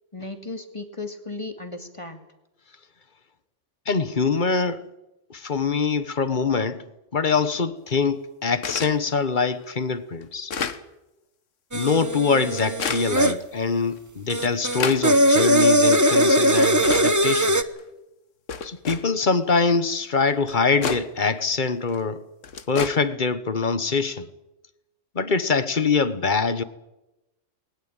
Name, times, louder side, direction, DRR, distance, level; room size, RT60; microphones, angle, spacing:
voice 1, 0.1-2.2, left 3 dB, 25° left, 2.4 m, -35 dB
voice 2, 3.9-4.8 5.3-6.8 7.1-10.5 11.7-17.6 18.6-22.2 22.7-24.3 25.1-26.6, left 4 dB, 40° left, 1.3 m, -24 dB
sound 1, 8.6-9.0 9.6-9.7 10.2-10.8 11.7-11.9 12.5-13.1 13.9-14.0 14.4-15.0 15.9-16.0 16.6-17.1 17.8-17.9 18.5-19.0 20.0-20.1 20.5-21.0 21.9-22.0 22.4-22.9, left 6 dB, 80° left, 1.6 m, -29 dB
sound 2, 11.7-13.4 14.3-17.6, right 1 dB, 15° right, 1.0 m, -20 dB
20.5 x 19.0 x 8.9 m
omnidirectional pair, 1.3 m